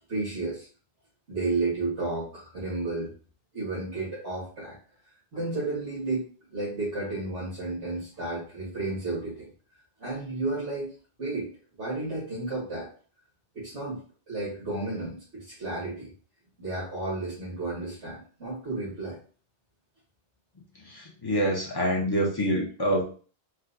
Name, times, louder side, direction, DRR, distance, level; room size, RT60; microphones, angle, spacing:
voice 1, 0.1-0.7 1.3-3.1 3.5-4.8 5.3-6.2 6.5-9.5 10.0-10.9 11.2-11.5 11.8-12.9 13.5-14.0 14.3-16.1 16.6-19.2, right 2 dB, 85° right, -9 dB, 1.7 m, -32 dB
voice 2, 20.9-23.0, equal, 25° left, -2 dB, 0.6 m, -26 dB
4.4 x 2.2 x 2.5 m, 0.41 s
omnidirectional pair, 1.1 m